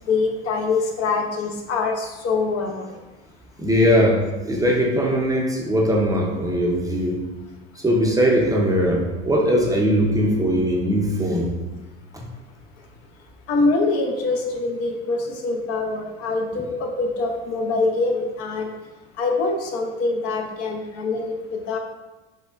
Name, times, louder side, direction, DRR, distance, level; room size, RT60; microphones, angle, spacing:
voice 1, 0.1-2.9 13.5-18.7 19.2-21.8, left 3 dB, 50° left, 2 dB, 0.6 m, -24 dB
voice 2, 3.6-7.2 7.8-11.5 12.1-12.3, equal, 10° right, -1 dB, 0.6 m, -20 dB
5.3 x 2.1 x 2.4 m, 1.1 s
hypercardioid pair, 90°, 32 cm